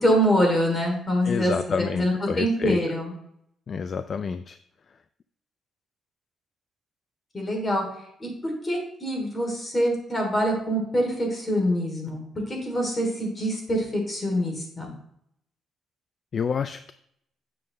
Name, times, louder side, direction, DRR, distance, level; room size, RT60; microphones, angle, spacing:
voice 1, 0.0-3.1 7.3-7.8 8.2-12.2 12.5-14.9, equal, 25° left, 1 dB, 3.2 m, -25 dB
voice 2, 1.2-2.8 3.7-4.6 16.3-16.9, left 6 dB, 45° left, 12 dB, 0.4 m, -28 dB
9.2 x 6.6 x 3.3 m, 0.71 s
cardioid pair, 95°, 0 cm